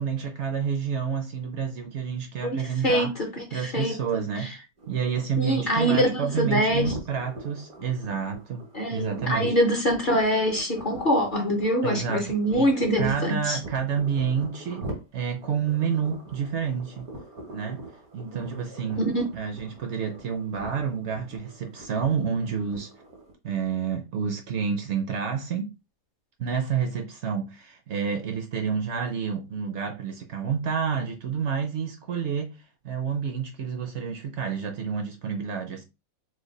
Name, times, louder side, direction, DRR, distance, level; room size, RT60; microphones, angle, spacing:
voice 1, 0.0-3.1 3.5-4.5 4.9-9.5 11.8-17.1 17.5-17.9 18.1-19.1 19.3-22.9 23.4-25.7 26.4-32.5 32.8-35.8, right 7 dB, 65° right, 0.8 m, -29 dB
voice 2, 2.4-4.5 5.4-6.9 8.7-13.6 18.2-18.4 19.0-19.2, equal, 45° left, 0.7 m, -25 dB
sound 1, 4.8-23.3, right 1 dB, 85° right, 1.5 m, -42 dB
3.2 x 2.1 x 3.8 m
omnidirectional pair, 1.5 m